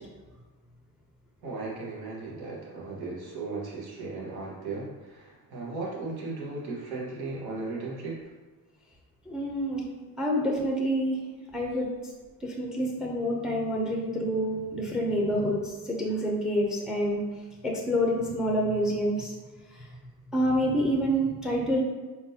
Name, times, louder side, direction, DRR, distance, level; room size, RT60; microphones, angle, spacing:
voice 1, 1.4-8.2, right 3 dB, 80° right, -4 dB, 1.5 m, -36 dB
voice 2, 9.3-9.8 10.2-11.2 11.5-11.9 12.4-17.2 17.6-19.3 19.7-19.9 20.3-21.8, equal, ahead, -1 dB, 0.5 m, -27 dB
4.3 x 3.8 x 2.8 m, 1.3 s
cardioid pair, 165°, 37 cm